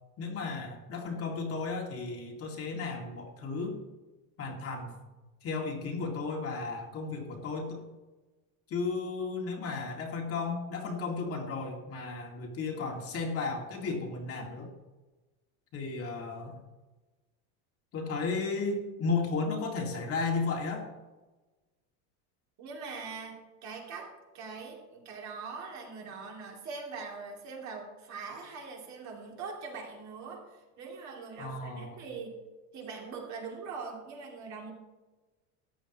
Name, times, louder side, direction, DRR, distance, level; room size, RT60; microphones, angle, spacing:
voice 1, 0.2-3.8 4.4-5.0 5.4-7.8 8.7-14.7 15.7-16.6 17.9-20.8 31.4-32.0, left 4 dB, 35° left, 1 dB, 2.0 m, -34 dB
voice 2, 22.6-32.4 32.7-34.7, right 4 dB, 45° right, -1 dB, 2.8 m, -42 dB
14.0 x 9.4 x 3.0 m, 1.2 s
cardioid pair, 150°, 40 cm